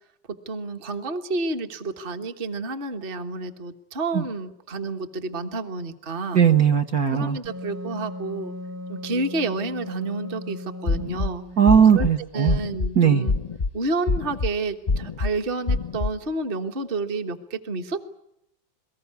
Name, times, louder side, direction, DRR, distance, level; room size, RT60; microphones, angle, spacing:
voice 1, 0.4-6.4 7.1-8.5 8.9-11.4 11.9-12.1 12.3-13.3 13.7-18.0, right 3 dB, 30° right, 7 dB, 1.4 m, -30 dB
voice 2, 6.3-7.4 11.6-12.6 13.0-13.3, right 8 dB, 50° right, 4 dB, 1.6 m, -18 dB
Wind instrument woodwind instrument, 7.4-11.9, left 1 dB, 80° right, 3.0 m, -37 dB
sound 1, 10.9-11.3 11.7-12.1 12.5-12.9 13.3-13.7 14.1-14.5 14.9-15.3 15.7-16.1, left 3 dB, 30° left, 0.7 m, -25 dB
23.0 x 20.0 x 9.5 m, 0.81 s
omnidirectional pair, 2.1 m